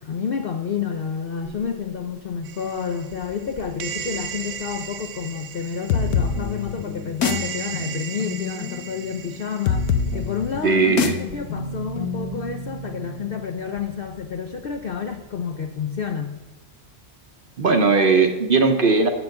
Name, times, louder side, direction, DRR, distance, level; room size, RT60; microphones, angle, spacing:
voice 1, 0.0-16.4, left 6 dB, 60° left, 6 dB, 0.6 m, -30 dB
sound 1, 1.4-8.3 9.9-10.0 10.5-17.6, right 5 dB, 40° left, 1.2 m, -43 dB
sound 2, 2.4-10.6, right 8 dB, 75° right, 1.1 m, -36 dB
sound 3, 5.9-13.3, left 6 dB, 90° left, 1.3 m, -26 dB
voice 2, 10.6-11.1 17.6-19.1, right 4 dB, 45° right, 5 dB, 0.8 m, -18 dB
7.3 x 6.0 x 7.7 m, 1.1 s
omnidirectional pair, 1.5 m